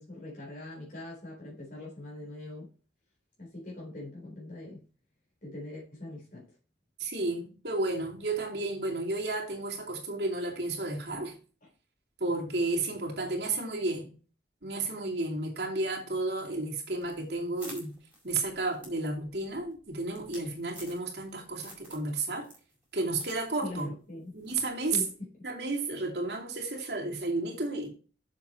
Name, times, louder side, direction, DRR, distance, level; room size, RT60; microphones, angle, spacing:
voice 1, 0.0-2.7 3.4-4.8 5.4-6.5 11.6-11.7 23.6-24.3 24.9-25.1, left 1 dB, 50° left, 4.1 m, -42 dB
voice 2, 7.0-11.3 12.2-14.1 14.6-17.9 18.2-22.5 22.9-23.9 24.3-25.0 25.4-27.9, right 2 dB, 65° right, 2.8 m, -32 dB
sound 1, 17.0-21.3 21.6-22.1 22.4-23.4 23.7-23.8 24.4-24.7, right 1 dB, 10° right, 4.5 m, -49 dB
7.3 x 7.2 x 4.4 m
head